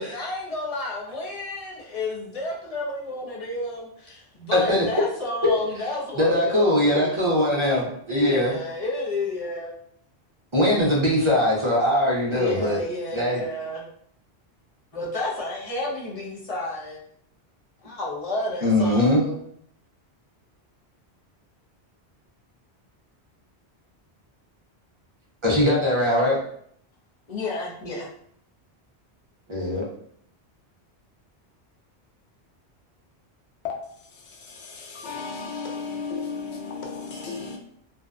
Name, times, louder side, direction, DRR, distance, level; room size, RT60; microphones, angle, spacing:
voice 1, 0.0-7.8 8.1-9.7 12.3-13.8 14.9-17.0 17.8-19.5 27.3-28.1, left 2 dB, 40° left, 0.6 m, -31 dB
voice 2, 4.5-4.9 5.4-5.5 6.2-8.5 10.5-12.8 13.1-13.4 18.6-19.2 25.4-26.4 29.5-29.8, left 1 dB, 35° right, 0.5 m, -21 dB
voice 3, 34.1-37.6, left 5 dB, 80° left, 0.9 m, -34 dB
2.6 x 2.1 x 2.4 m
omnidirectional pair, 1.1 m